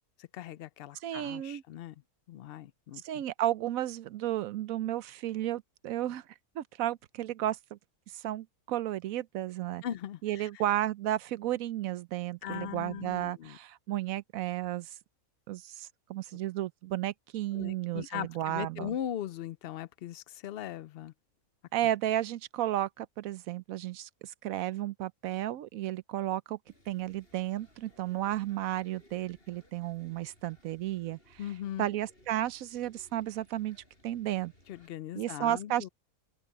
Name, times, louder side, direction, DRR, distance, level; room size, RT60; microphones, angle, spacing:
voice 1, 0.0-1.9 2.3-3.2 9.8-10.5 12.4-13.6 17.5-21.1 31.4-31.9 34.7-35.9, left 11 dB, 80° left, 0.5 m, -39 dB
voice 2, 1.0-1.6 3.0-6.2 6.5-7.8 8.1-9.8 10.2-14.9 15.5-18.9 21.7-26.6 26.9-31.4 31.8-33.8 34.0-34.5 35.1-35.8, right 13 dB, 70° right, 1.0 m, -33 dB
sound 1, 26.7-34.9, left 1 dB, 40° left, 6.6 m, -62 dB
open air
omnidirectional pair, 1.6 m